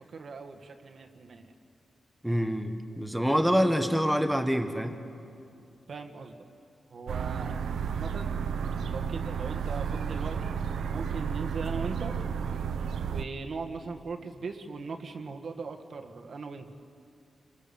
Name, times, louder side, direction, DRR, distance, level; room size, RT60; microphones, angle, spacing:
voice 1, 0.0-1.5 5.9-6.3 6.9-7.6 7.8-8.4 8.9-10.6 10.9-12.2 13.1-16.7, right 4 dB, 55° right, 4 dB, 1.8 m, -39 dB
voice 2, 2.2-5.0, equal, ahead, 7 dB, 1.6 m, -26 dB
sound 1, 7.1-13.2, right 7 dB, 90° right, 0.9 m, -32 dB
29.0 x 24.0 x 7.2 m, 2.5 s
wide cardioid pair, 125°, 0 cm